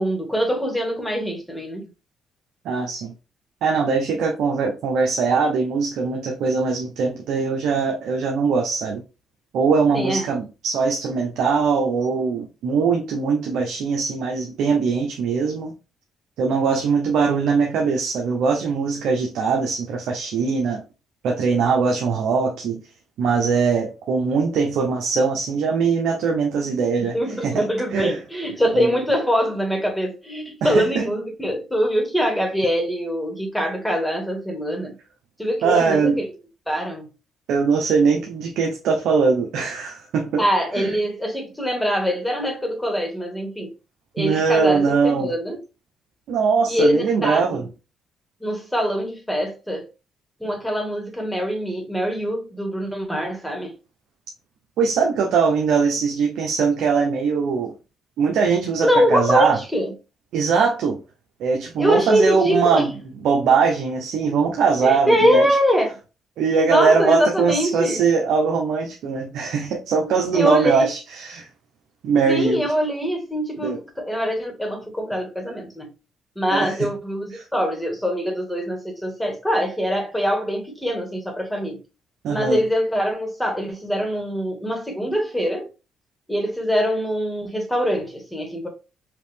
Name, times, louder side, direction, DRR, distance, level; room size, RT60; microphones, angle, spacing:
voice 1, 0.0-1.8 9.9-10.3 27.0-35.0 35.4-36.3 36.7-37.1 40.4-43.7 44.1-45.6 46.7-47.6 48.4-49.8 50.4-53.7 58.8-59.9 61.8-62.9 64.8-66.0 66.7-68.0 70.0-70.9 72.3-75.9 76.4-81.8 82.3-85.7 86.3-88.7, equal, 5° left, 1.8 m, -23 dB
voice 2, 2.6-3.1 3.6-9.0 9.5-15.7 16.4-20.8 21.2-22.8 23.2-27.1 27.4-28.2 28.7-28.9 30.6-31.1 35.6-36.2 37.5-40.4 40.7-41.0 44.2-45.3 46.3-47.6 54.8-57.7 58.2-59.6 60.3-61.0 61.4-62.9 63.2-65.5 66.4-71.5 72.0-72.6 73.6-73.8 76.5-76.9 77.4-77.5 82.2-82.6, right 5 dB, 75° right, 0.8 m, -21 dB
5.0 x 2.9 x 3.4 m
cardioid pair, 90°, 0 cm